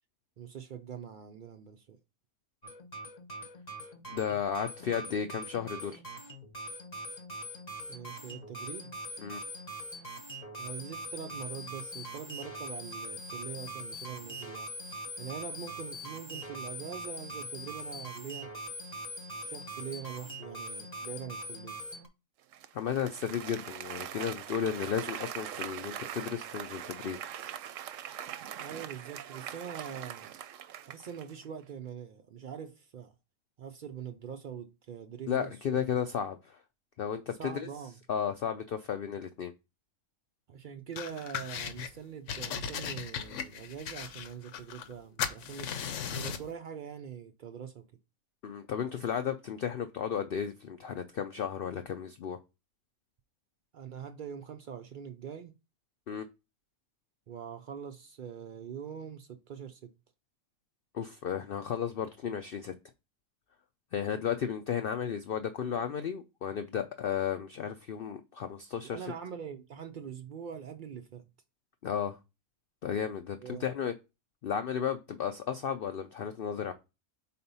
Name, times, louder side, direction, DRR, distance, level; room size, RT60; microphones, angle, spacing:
voice 1, 0.4-2.0 7.9-8.9 10.6-14.7 15.2-18.5 19.4-21.8 28.6-30.3 30.9-33.1 33.6-35.8 37.4-38.0 40.5-45.8 46.1-47.8 53.7-55.6 57.3-59.9 68.8-71.2 73.4-73.7, right 8 dB, 90° right, 0.4 m, -43 dB
sound 1, 2.6-22.1, equal, 35° left, 0.9 m, -42 dB
voice 2, 4.1-6.0 9.2-9.4 22.7-27.2 35.3-36.6 37.0-37.7 38.1-39.5 48.4-52.4 56.1-56.3 60.9-62.7 63.9-69.0 71.8-72.2 72.8-73.9 74.4-76.7, left 8 dB, 80° left, 0.5 m, -34 dB
Applause, 22.5-31.4, right 10 dB, 70° right, 0.9 m, -42 dB
sound 2, 41.0-41.9 42.3-44.9 45.2-46.5, left 8 dB, 65° left, 0.9 m, -37 dB
4.3 x 4.2 x 5.4 m
omnidirectional pair, 1.5 m